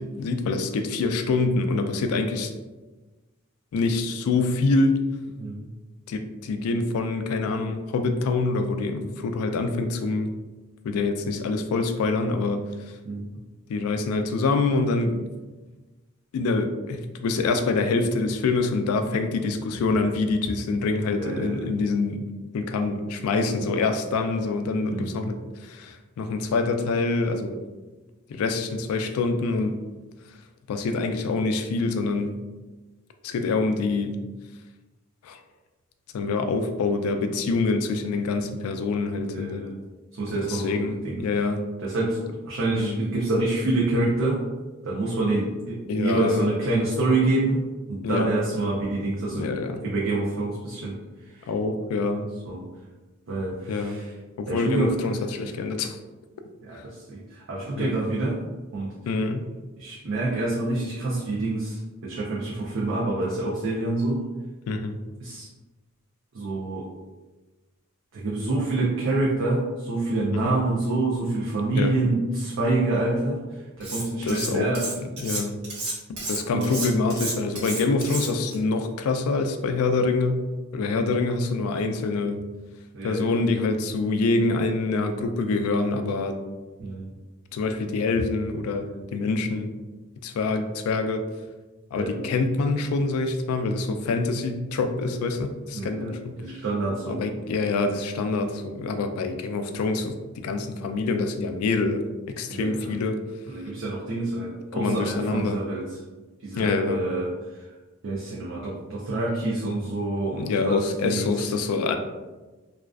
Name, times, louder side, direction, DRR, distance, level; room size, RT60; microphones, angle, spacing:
voice 1, 0.0-2.5 3.7-5.0 6.1-10.3 10.8-12.7 13.7-15.3 16.3-22.3 22.5-27.6 28.3-29.8 30.7-32.3 33.2-34.2 35.2-35.4 36.1-39.7 40.3-41.6 42.7-43.0 45.9-46.5 48.0-48.3 49.3-49.8 51.5-52.3 53.7-54.0 54.4-56.0 56.7-56.8 57.8-58.0 59.1-59.5 64.7-65.0 70.3-70.5 71.7-72.0 74.2-74.7 75.0-75.6 76.3-80.5 80.7-82.4 83.0-86.4 87.5-89.7 90.2-91.2 91.9-96.4 97.1-102.0 102.3-103.2 104.7-105.6 106.6-107.0 110.4-111.9, left 3 dB, 85° left, 10 dB, 0.3 m, -25 dB
voice 2, 21.1-21.7 24.9-25.3 39.2-39.7 40.2-41.2 41.8-42.2 42.5-44.4 44.8-49.5 49.8-50.9 51.4-51.5 52.5-52.7 53.3-54.1 54.5-54.9 56.6-58.4 58.7-58.9 59.8-64.3 65.2-65.5 66.3-66.9 68.1-74.9 76.5-76.8 82.9-83.3 86.8-87.1 91.9-92.2 95.7-97.3 102.5-103.0 103.5-105.9 106.4-107.7 108.0-111.4, right 2 dB, 60° right, -5 dB, 0.4 m, -27 dB
Cutlery silverware, 73.8-74.5 74.7-78.6, right 2 dB, 85° right, 1.1 m, -31 dB
2.4 x 2.3 x 2.2 m, 1.2 s
head